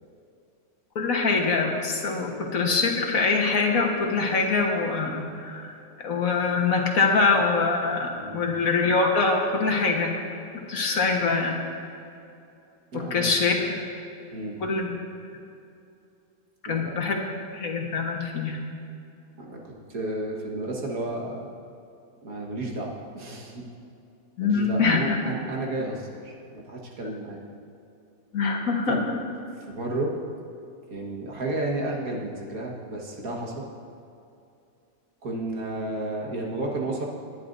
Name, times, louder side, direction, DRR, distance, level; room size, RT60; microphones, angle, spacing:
voice 1, 1.0-5.7 6.0-10.2 10.7-11.6 12.9-13.7 14.6-14.9 16.6-17.2 17.5-18.6 24.4-25.0 28.3-29.0, left 4 dB, 75° left, 1 dB, 1.8 m, -24 dB
voice 2, 8.1-8.5 12.9-13.3 14.3-14.6 16.7-17.0 19.4-21.5 22.2-23.6 24.4-27.4 28.9-29.0 29.6-30.2 30.9-33.5 35.2-37.1, right 2 dB, 85° right, -2 dB, 2.0 m, -32 dB
20.0 x 10.5 x 2.6 m, 2.6 s
omnidirectional pair, 1.5 m